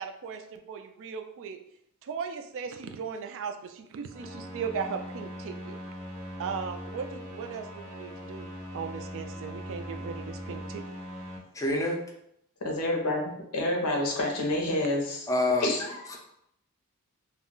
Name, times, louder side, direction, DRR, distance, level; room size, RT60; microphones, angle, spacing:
voice 1, 0.0-1.6 2.0-5.8 6.4-10.8, right 6 dB, 60° right, 7 dB, 0.3 m, -37 dB
sound 1, 4.1-11.4, equal, 80° right, 0.7 m, -40 dB
voice 2, 11.5-12.0 15.3-15.7 16.1-16.2, left 2 dB, 15° left, -1 dB, 0.4 m, -26 dB
voice 3, 12.6-15.3 15.6-15.9, left 1 dB, 90° left, 0 dB, 0.7 m, -28 dB
2.3 x 2.1 x 3.7 m, 0.75 s
head